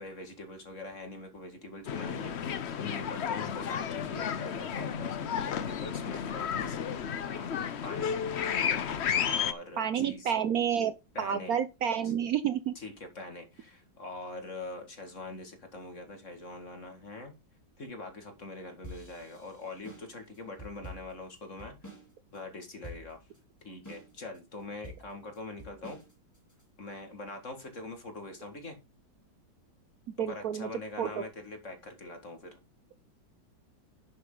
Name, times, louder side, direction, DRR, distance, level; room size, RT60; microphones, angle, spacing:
voice 1, 0.0-7.5 7.8-8.2 8.6-8.8 9.2-10.3 11.1-11.6 12.0-12.1 12.8-17.3 17.8-21.8 22.3-23.2 23.6-26.0 26.8-28.8 30.2-32.6, left 2 dB, 40° left, 2.2 m, -43 dB
sound 1, 1.9-9.5, left 8 dB, 70° left, 0.6 m, -32 dB
voice 2, 9.8-12.7 30.2-30.7 31.0-31.2, right 8 dB, 65° right, 1.0 m, -30 dB
sound 2, 18.8-22.1 22.3-22.4 22.8-23.4 23.8-24.4 24.8-26.6, equal, 10° left, 3.2 m, -47 dB
11.0 x 7.4 x 3.8 m
omnidirectional pair, 2.1 m